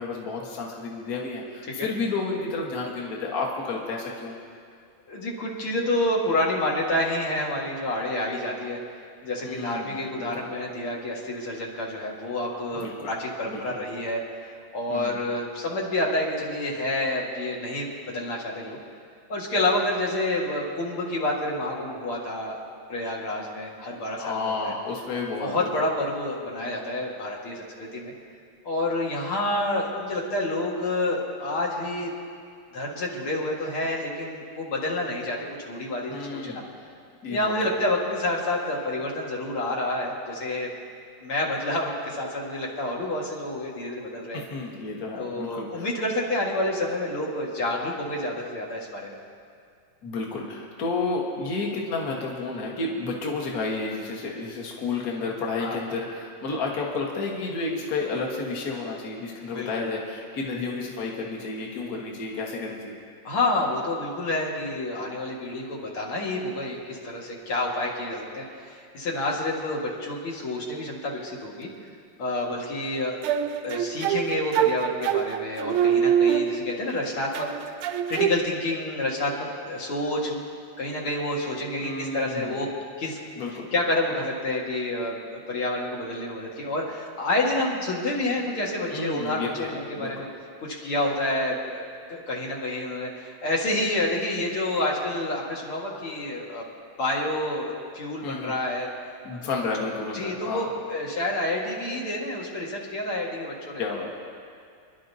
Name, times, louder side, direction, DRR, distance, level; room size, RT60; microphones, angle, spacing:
voice 1, 0.0-4.4 9.4-10.5 12.8-13.1 13.5-13.6 14.9-15.2 24.2-25.7 36.1-36.7 37.2-37.8 44.3-45.9 50.0-63.0 81.8-82.6 83.4-83.7 88.9-90.1 98.2-98.5 99.2-100.7 103.8-104.1, left 3 dB, 45° left, -2 dB, 1.8 m, -31 dB
voice 2, 5.1-8.8 9.2-18.8 19.3-22.6 22.9-24.7 25.4-28.1 28.6-32.1 32.7-36.6 37.3-40.7 41.2-44.4 45.2-49.2 55.6-55.8 59.5-60.0 63.2-71.7 72.2-73.2 73.6-77.5 77.8-80.4 80.8-82.7 83.0-83.2 83.7-85.2 85.5-90.3 90.6-96.7 97.0-98.9 99.3-99.4 100.1-103.8, left 1 dB, 75° left, -3 dB, 2.7 m, -28 dB
sound 1, 73.2-76.9 77.3-78.4, right 9 dB, 80° right, 1.5 m, -25 dB
28.5 x 11.0 x 2.7 m, 2.3 s
omnidirectional pair, 2.4 m